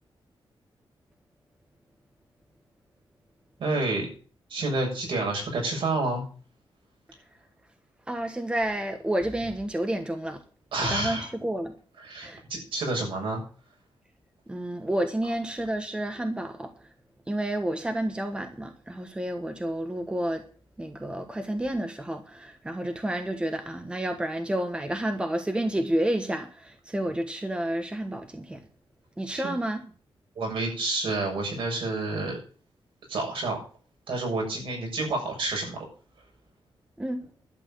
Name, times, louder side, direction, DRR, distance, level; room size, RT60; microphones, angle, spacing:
voice 1, 3.6-4.1 4.5-6.2 10.7-11.3 12.0-13.4 29.4-29.5 30.4-32.4 33.1-33.6 34.1-35.8, right 2 dB, 70° right, 7.1 m, -29 dB
voice 2, 8.1-10.4 10.9-11.7 12.2-12.4 14.5-16.7 17.3-20.4 20.8-28.6 29.2-29.8 37.0-37.2, right 1 dB, 10° right, 1.3 m, -30 dB
12.0 x 8.1 x 8.8 m
wide cardioid pair, 165°, 9 cm